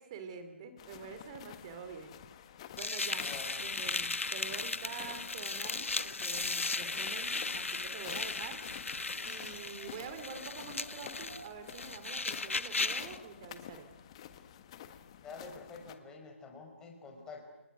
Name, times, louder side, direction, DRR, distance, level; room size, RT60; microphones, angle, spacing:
voice 1, 0.0-2.2 2.7-3.3 3.6-8.6 9.2-13.9, right 5 dB, 25° right, 9 dB, 3.3 m, -46 dB
sound 1, 0.8-15.9, left 10 dB, 25° left, 1.6 m, -50 dB
sound 2, 2.8-13.2, left 3 dB, 75° left, 1.5 m, -36 dB
voice 2, 3.1-3.6 15.2-17.4, left 4 dB, 10° left, 2 dB, 4.9 m, -48 dB
Wind, 5.3-13.8, right 4 dB, 45° right, 5.9 m, -61 dB
29.5 x 28.5 x 6.4 m, 1.0 s
figure-of-eight pair, 155°, 7 cm